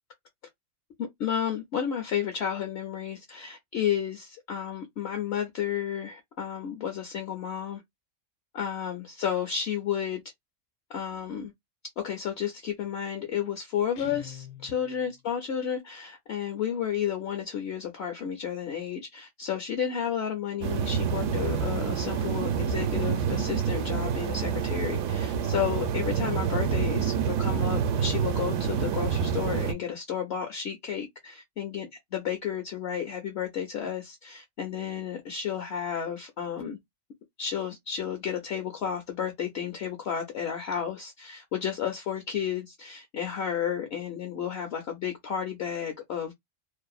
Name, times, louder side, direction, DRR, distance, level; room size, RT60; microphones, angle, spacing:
voice 1, 1.0-7.8 8.5-10.2 10.9-11.5 12.0-36.8 37.4-46.3, left 8 dB, 60° left, 0.8 m, -32 dB
Guitar, 13.9-15.2, left 9 dB, 90° left, 1.1 m, -44 dB
sound 1, 20.6-29.7, right 7 dB, 75° right, 0.9 m, -27 dB
2.6 x 2.0 x 2.3 m
omnidirectional pair, 1.4 m